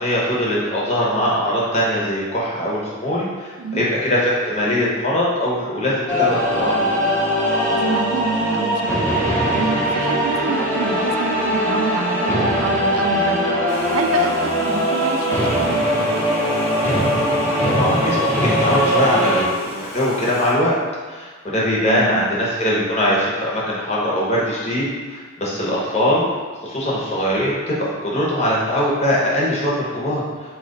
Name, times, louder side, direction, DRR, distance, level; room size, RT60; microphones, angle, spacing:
voice 1, 0.0-7.0 17.8-20.7 21.1-26.2 26.6-30.2, equal, 30° left, -6 dB, 1.0 m, -21 dB
sound 1, 6.1-19.4, equal, 10° left, 0.9 m, -20 dB
voice 2, 7.7-9.1 9.5-13.5 13.9-15.8 16.1-16.2 21.9-22.3, right 4 dB, 85° right, 6 dB, 0.3 m, -27 dB
Domestic sounds home sounds, 13.7-20.5, left 1 dB, 85° left, 1.0 m, -37 dB
3.8 x 2.9 x 4.0 m, 1.4 s
head